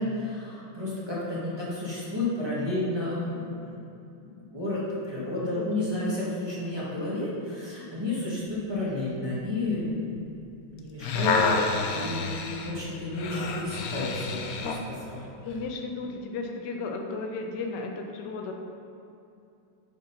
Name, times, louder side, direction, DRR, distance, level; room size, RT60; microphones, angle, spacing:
voice 1, 0.0-3.6 4.2-10.2 10.6-15.3, left 2 dB, 15° right, -8 dB, 1.5 m, -31 dB
voice 2, 1.3-1.7 5.4-5.6 15.4-18.5, left 3 dB, 65° left, 3 dB, 1.2 m, -35 dB
sound 1, 10.8-14.9 15.5-15.6, left 4 dB, 85° left, 0.7 m, -28 dB
7.7 x 4.5 x 5.7 m, 2.6 s
omnidirectional pair, 2.3 m